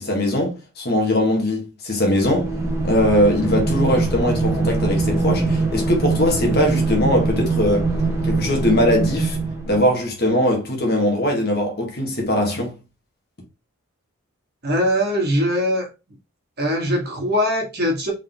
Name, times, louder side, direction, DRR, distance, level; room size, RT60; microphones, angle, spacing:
voice 1, 0.0-2.5 2.8-7.9 8.2-9.4 9.7-12.8, left 1 dB, 45° left, 1.4 m, -20 dB
sound 1, 2.2-9.9, right 3 dB, 10° right, 0.8 m, -22 dB
voice 2, 14.6-15.9 16.6-18.1, equal, 45° right, 1.5 m, -21 dB
4.7 x 3.7 x 2.9 m
head